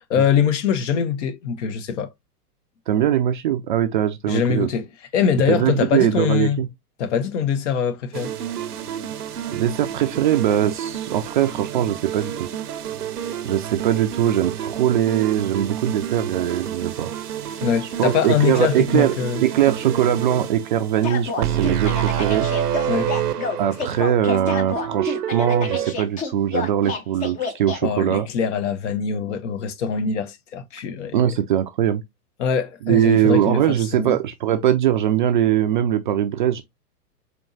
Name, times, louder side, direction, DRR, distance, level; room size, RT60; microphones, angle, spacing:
voice 1, 0.1-2.1 4.3-4.9 5.1-6.6 7.0-8.3 17.6-19.4 22.9-23.2 27.8-31.2 32.4-34.2, left 7 dB, 50° left, 0.8 m, -23 dB
voice 2, 2.9-4.7 5.5-6.7 9.5-12.5 13.4-17.1 18.0-19.2 19.4-22.5 23.6-28.3 31.1-32.0 32.9-36.6, right 11 dB, 35° right, 0.4 m, -21 dB
sound 1, 8.1-25.9, right 10 dB, 80° right, 0.7 m, -29 dB
sound 2, 21.0-27.8, left 4 dB, 15° left, 0.5 m, -29 dB
4.4 x 2.8 x 2.6 m
figure-of-eight pair, 110°, 46 cm